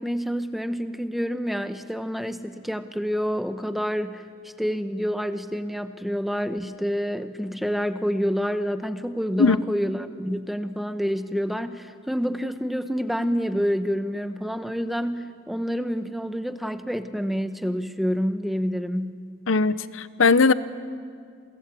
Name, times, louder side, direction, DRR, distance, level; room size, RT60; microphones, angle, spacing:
voice 1, 0.0-19.2, equal, ahead, 9 dB, 0.9 m, -28 dB
voice 2, 19.5-20.5, left 4 dB, 85° left, 15 dB, 0.9 m, -19 dB
28.5 x 23.0 x 8.5 m, 2.2 s
head